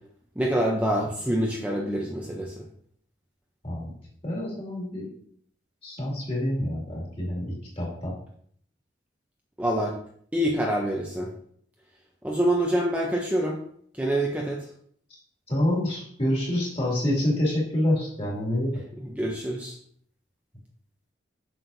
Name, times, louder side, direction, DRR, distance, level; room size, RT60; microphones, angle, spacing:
voice 1, 0.4-2.6 9.6-9.9 10.3-11.3 12.2-13.6 14.0-14.6 19.2-19.8, right 1 dB, 5° right, -1 dB, 0.6 m, -26 dB
voice 2, 4.2-5.1 5.8-8.1 15.5-18.7, left 1 dB, 30° left, -4 dB, 2.4 m, -27 dB
7.7 x 6.3 x 2.7 m, 0.63 s
head